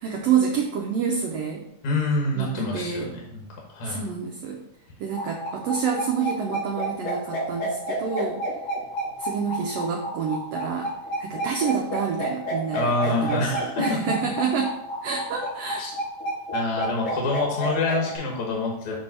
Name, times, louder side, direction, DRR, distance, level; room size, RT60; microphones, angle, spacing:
voice 1, 0.0-1.6 2.3-3.1 3.8-4.6 5.0-8.4 9.2-10.9 11.2-13.5 13.8-15.9, right 6 dB, 90° right, 1 dB, 1.4 m, -28 dB
voice 2, 1.8-4.1 12.7-13.8 15.8-15.9 16.5-19.0, left 2 dB, 65° left, -2 dB, 2.3 m, -26 dB
sound 1, 5.1-18.2, right 1 dB, 85° left, 3.8 m, -29 dB
6.8 x 3.4 x 5.5 m, 0.85 s
omnidirectional pair, 3.8 m